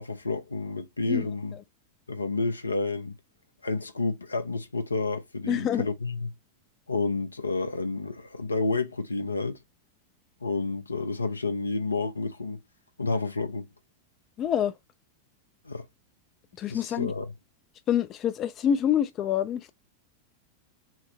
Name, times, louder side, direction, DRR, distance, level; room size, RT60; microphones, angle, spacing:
voice 1, 0.0-1.6 2.1-3.1 3.6-6.3 6.9-9.6 10.4-12.6 13.0-13.7 15.7-15.8 16.7-17.3, left 3 dB, 80° left, 0.6 m, -30 dB
voice 2, 5.5-5.9 14.4-14.7 16.6-17.1 17.9-19.7, left 9 dB, 30° left, 0.4 m, -26 dB
5.7 x 2.1 x 2.8 m
figure-of-eight pair, 90°, 0 cm